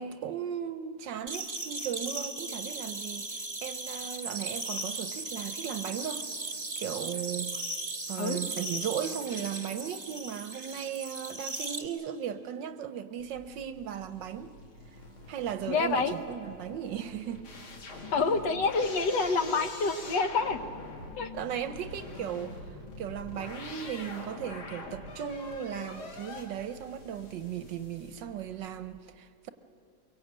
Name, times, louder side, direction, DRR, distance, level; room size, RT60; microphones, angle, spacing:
voice 1, 0.0-6.3 6.8-7.6 8.1-14.5 15.3-17.5 21.3-29.5, right 9 dB, 70° right, 11 dB, 1.3 m, -37 dB
sound 1, 1.3-11.8, right 2 dB, 25° right, 1.4 m, -37 dB
sound 2, 13.2-28.7, left 2 dB, 80° left, 3.2 m, -45 dB
voice 2, 15.7-16.1 18.1-20.6 21.2-21.3, left 4 dB, 60° left, 8 dB, 1.6 m, -27 dB
23.5 x 22.5 x 8.8 m, 2.6 s
omnidirectional pair, 2.3 m